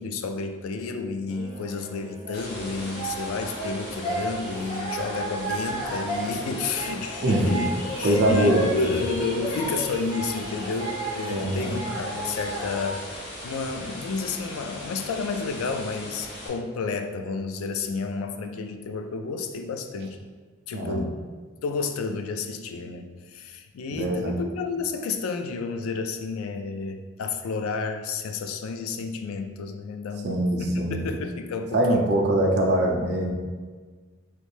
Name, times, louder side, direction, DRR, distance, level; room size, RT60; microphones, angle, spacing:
voice 1, 0.0-7.7 8.0-20.3 20.7-21.2 21.6-30.3 30.6-32.4, left 4 dB, 85° left, 7 dB, 0.3 m, -31 dB
sound 1, 1.3-12.9, right 1 dB, 25° left, 0.9 m, -34 dB
sound 2, 2.3-16.5, left 1 dB, 50° left, 0.7 m, -39 dB
voice 2, 7.2-7.5 8.0-8.7 11.3-11.8 20.7-21.1 23.9-24.4 30.2-31.1 31.7-33.3, right 1 dB, 50° right, 0 dB, 0.5 m, -23 dB
3.1 x 2.6 x 3.2 m, 1.4 s
head